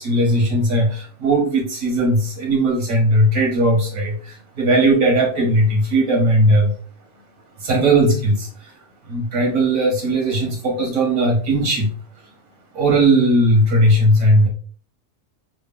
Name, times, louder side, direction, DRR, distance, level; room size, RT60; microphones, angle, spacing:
voice 1, 0.0-6.7 7.6-8.7 9.0-11.9 12.7-14.5, right 1 dB, 85° right, 1 dB, 1.4 m, -17 dB
3.4 x 2.0 x 3.5 m, 0.42 s
omnidirectional pair, 1.4 m